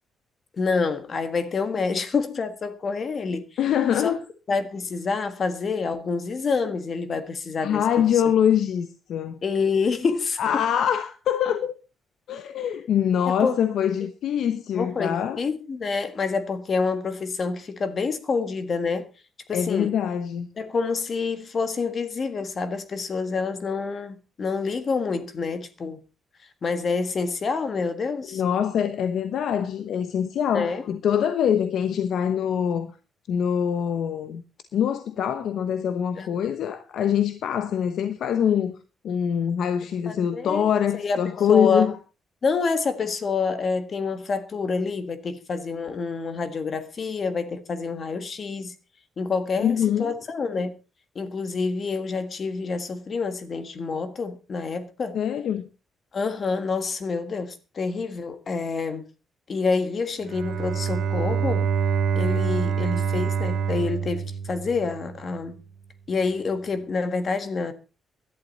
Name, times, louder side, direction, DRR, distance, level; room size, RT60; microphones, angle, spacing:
voice 1, 0.6-3.4 4.0-4.1 4.5-8.0 9.4-10.4 13.4-13.6 14.8-19.1 19.5-19.9 20.6-26.0 26.6-28.4 30.5-30.8 36.2-36.3 40.1-40.7 40.9-41.2 41.5-41.9 42.4-48.7 49.2-50.7 51.1-55.2 56.1-59.1 59.5-61.7 62.1-65.6 66.1-67.7, left 4 dB, 35° left, 1.5 m, -27 dB
voice 2, 3.6-4.2 7.6-9.4 10.4-11.8 12.3-15.4 19.5-20.5 28.3-32.9 33.3-34.4 34.7-38.8 39.0-41.9 49.6-50.1 55.1-55.7, left 8 dB, 60° left, 1.0 m, -24 dB
Bowed string instrument, 60.2-65.2, right 6 dB, 70° right, 2.8 m, -26 dB
17.0 x 11.5 x 4.1 m
cardioid pair, 175°, 0 cm